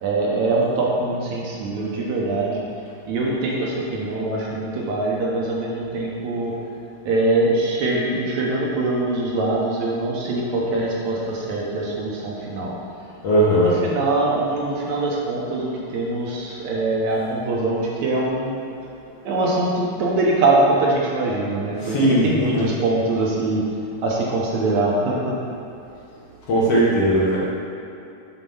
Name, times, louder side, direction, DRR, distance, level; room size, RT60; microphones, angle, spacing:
voice 1, 0.0-2.6 3.1-6.5 7.1-12.7 13.6-18.6 19.2-23.6 24.0-25.4, right 2 dB, 70° right, -4 dB, 2.2 m, -23 dB
voice 2, 13.2-13.8 21.8-22.7 26.5-27.4, right 1 dB, 60° left, -7 dB, 1.9 m, -18 dB
7.4 x 4.1 x 5.4 m, 2.8 s
omnidirectional pair, 3.6 m